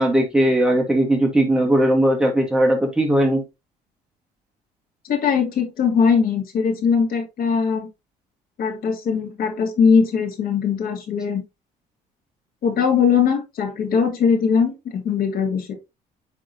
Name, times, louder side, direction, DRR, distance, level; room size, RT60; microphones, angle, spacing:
voice 1, 0.0-3.4, right 1 dB, 5° right, 1.8 m, -18 dB
voice 2, 5.0-7.9 8.6-11.4 12.6-15.7, left 6 dB, 60° left, 2.2 m, -20 dB
9.7 x 3.7 x 2.7 m
cardioid pair, 110°, 17 cm